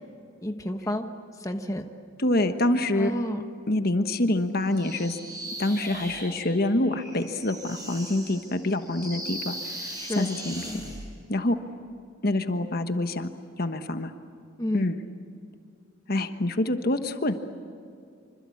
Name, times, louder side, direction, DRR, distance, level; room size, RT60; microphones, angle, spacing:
voice 1, 0.4-1.1 1.4-1.9 3.0-3.4 10.0-10.3 14.6-14.9, equal, 15° left, 5 dB, 1.2 m, -29 dB
voice 2, 2.2-3.1 3.7-5.2 5.6-9.5 10.1-10.5 11.3-11.6 12.2-13.3 13.6-14.1 14.7-14.9 16.1-17.3, left 1 dB, 50° left, 8 dB, 1.3 m, -26 dB
sound 1, 4.7-11.0, right 1 dB, 20° right, 7.6 m, -39 dB
26.5 x 26.0 x 8.6 m, 2.4 s
head